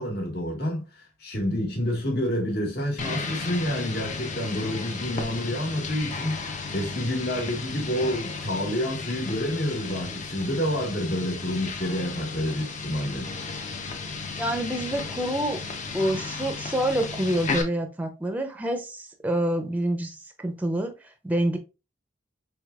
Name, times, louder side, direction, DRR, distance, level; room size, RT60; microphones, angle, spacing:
voice 1, 0.0-13.7, equal, 55° left, 1.5 m, -29 dB
sound 1, 3.0-17.6, left 4 dB, 40° left, 0.7 m, -34 dB
voice 2, 14.4-15.6 15.9-21.6, right 1 dB, 10° right, 0.5 m, -27 dB
4.9 x 3.4 x 2.4 m
head